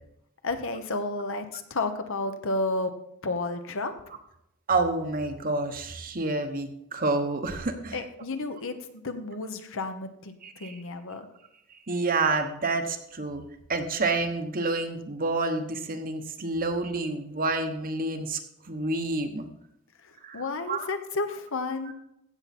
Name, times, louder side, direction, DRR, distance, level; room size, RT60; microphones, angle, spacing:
voice 1, 0.4-3.0 3.2-3.9 7.9-11.3 20.0-21.9, left 3 dB, 65° left, 8 dB, 1.1 m, -32 dB
voice 2, 4.7-8.0 10.4-10.8 11.9-13.4 13.7-19.5 20.2-20.4 20.7-20.9 21.8-21.9, right 3 dB, 40° right, 6 dB, 1.1 m, -28 dB
15.5 x 7.1 x 4.3 m, 0.80 s
head